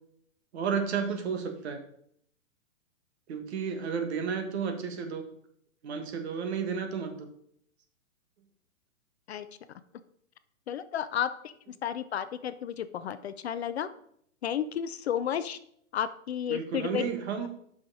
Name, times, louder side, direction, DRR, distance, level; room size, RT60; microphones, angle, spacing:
voice 1, 0.5-1.8 3.3-5.2 5.8-7.3 16.5-17.5, right 6 dB, 50° right, 7 dB, 1.5 m, -32 dB
voice 2, 10.7-11.5 11.8-13.9 14.4-15.6 15.9-17.0, left 9 dB, 50° left, 12 dB, 0.5 m, -32 dB
7.4 x 5.8 x 4.8 m, 0.68 s
hypercardioid pair, 150°, 42 cm